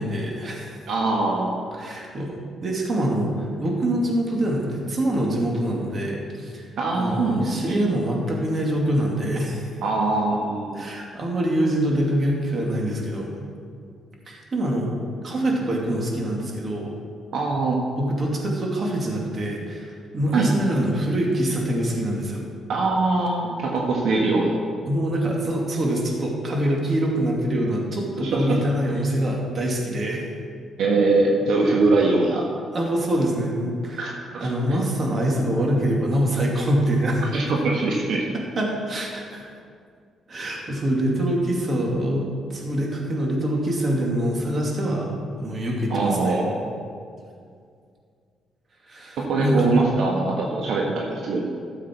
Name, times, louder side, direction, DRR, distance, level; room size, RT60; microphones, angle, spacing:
voice 1, 0.0-0.8 1.7-6.7 6.9-9.7 10.7-13.4 14.3-14.9 15.2-16.9 18.0-22.5 24.9-30.3 32.7-34.1 34.4-37.2 38.3-39.5 40.3-46.4 48.9-49.7, right 1 dB, 40° right, -1 dB, 2.3 m, -25 dB
voice 2, 0.9-1.5 6.8-7.8 9.8-10.8 17.3-17.8 20.3-20.5 22.7-24.6 28.2-28.6 30.8-32.4 34.0-34.5 37.3-38.3 45.9-46.6 49.2-51.4, right 3 dB, 75° right, -1 dB, 1.4 m, -22 dB
13.5 x 7.3 x 4.5 m, 2.2 s
cardioid pair, 90°, 0 cm